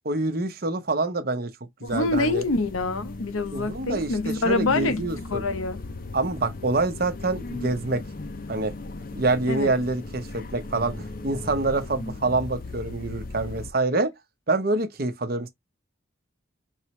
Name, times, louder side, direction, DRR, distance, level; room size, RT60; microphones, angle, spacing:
voice 1, 0.0-1.5 1.8-2.4 3.5-5.4 6.1-8.0 8.5-8.7 9.1-14.1 14.5-15.5, right 2 dB, 45° right, 0.8 m, -26 dB
voice 2, 1.8-5.0 5.3-5.8 9.5-9.7, left 3 dB, 85° left, 0.8 m, -26 dB
sound 1, 1.9-13.7, left 2 dB, 45° left, 0.6 m, -37 dB
4.7 x 3.0 x 3.1 m
head